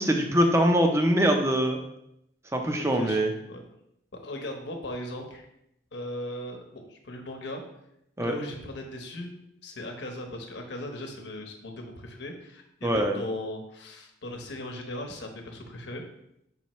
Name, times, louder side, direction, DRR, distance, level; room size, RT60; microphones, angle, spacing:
voice 1, 0.0-1.8 2.5-3.3 8.2-8.3 12.8-13.1, equal, 15° right, 3 dB, 0.6 m, -23 dB
voice 2, 2.7-3.6 4.2-5.4 5.9-7.6 8.2-9.3 9.6-16.0, left 1 dB, 75° left, 3 dB, 1.0 m, -38 dB
5.5 x 5.5 x 3.1 m, 0.79 s
head